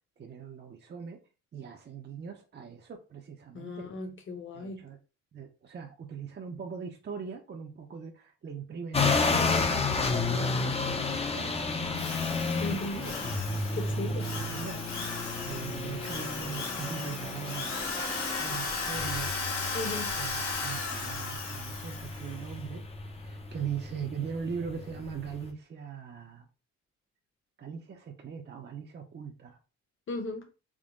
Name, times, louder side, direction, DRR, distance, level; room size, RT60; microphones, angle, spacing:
voice 1, 0.2-1.2 1.5-3.8 4.5-5.0 5.3-12.1 12.7-13.1 13.9-14.0 14.4-14.8 15.4-17.8 18.4-19.3 19.8-26.5 27.6-29.6, right 7 dB, 35° right, 2 dB, 0.6 m, -40 dB
voice 2, 3.5-4.8 12.6-13.0 13.7-14.3 19.7-20.1 30.1-30.5, left 2 dB, 40° left, 5 dB, 1.0 m, -36 dB
sound 1, 8.9-25.5, left 4 dB, 20° left, 0.6 m, -32 dB
Drill, 12.0-22.4, left 3 dB, 65° left, 1.7 m, -36 dB
3.7 x 2.1 x 3.7 m, 0.32 s
cardioid pair, 90°, 30 cm